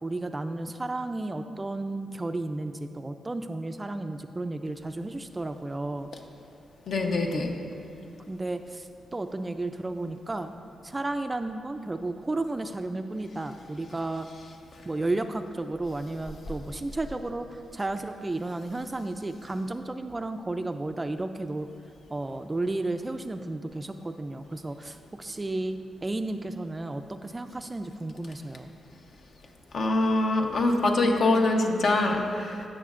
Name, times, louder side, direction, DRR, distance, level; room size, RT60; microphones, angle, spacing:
voice 1, 0.0-6.1 8.3-10.5 10.8-14.3 14.8-21.7 22.1-28.7, right 2 dB, 20° right, 8 dB, 0.3 m, -33 dB
voice 2, 6.9-7.5 29.7-32.6, left 2 dB, 60° left, 2 dB, 0.9 m, -24 dB
15.0 x 6.3 x 2.5 m, 2.6 s
cardioid pair, 100°, 0 cm